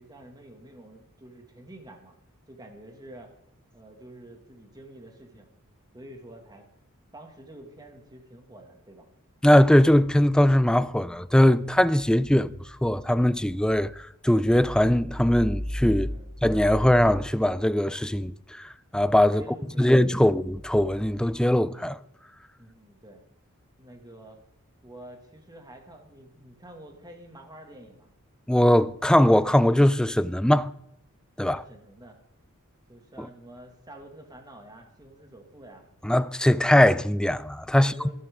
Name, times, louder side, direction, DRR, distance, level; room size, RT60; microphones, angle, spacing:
voice 1, 0.0-2.1 2.5-3.3 3.7-5.5 5.9-6.7 7.1-9.1 16.0-16.3 19.4-20.3 22.6-23.2 23.8-24.4 24.8-28.1 31.4-32.2 32.9-35.8 37.8-38.1, right 1 dB, 20° right, 2.1 m, -48 dB
voice 2, 9.4-12.5 12.8-13.9 14.2-16.1 16.4-18.3 18.6-19.4 19.8-22.0 28.5-30.7 31.4-31.6 33.2-33.3 36.0-37.9, left 1 dB, 5° left, 0.3 m, -20 dB
13.0 x 13.0 x 3.7 m
head